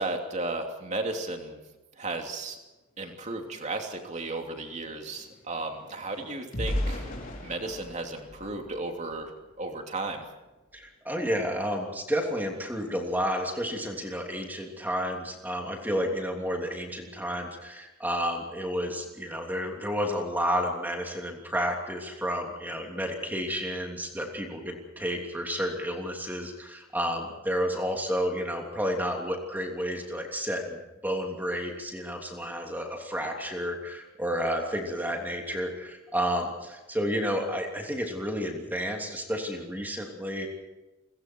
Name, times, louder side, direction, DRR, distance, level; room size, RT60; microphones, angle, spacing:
voice 1, 0.0-1.6 2.0-2.6 3.0-7.1 7.4-9.3 9.6-10.2, right 2 dB, 30° right, 3 dB, 3.0 m, -34 dB
sound 1, 3.6-3.7 3.9-9.4 9.9-10.2 10.5-10.7, equal, 40° left, 4.5 m, -37 dB
voice 2, 10.7-40.5, equal, 10° right, 1 dB, 3.1 m, -31 dB
29.5 x 22.5 x 4.7 m, 1.1 s
head